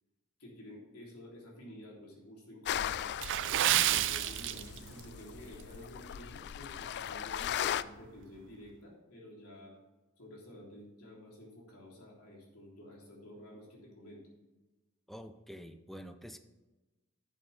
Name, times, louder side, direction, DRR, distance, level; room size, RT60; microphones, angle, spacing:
voice 1, 0.4-3.0 3.8-9.8 10.2-14.2, equal, 85° left, -2 dB, 3.4 m, -51 dB
sound 1, 2.7-7.8, left 10 dB, 50° left, 0.3 m, -38 dB
Water / Splash splatter, 3.2-5.1 5.4-5.6 6.2-6.4 6.9-7.0, right 12 dB, 60° right, 0.4 m, -30 dB
voice 2, 15.1-16.4, equal, ahead, 8 dB, 0.5 m, -47 dB
11.5 x 8.0 x 3.4 m, 1.1 s
head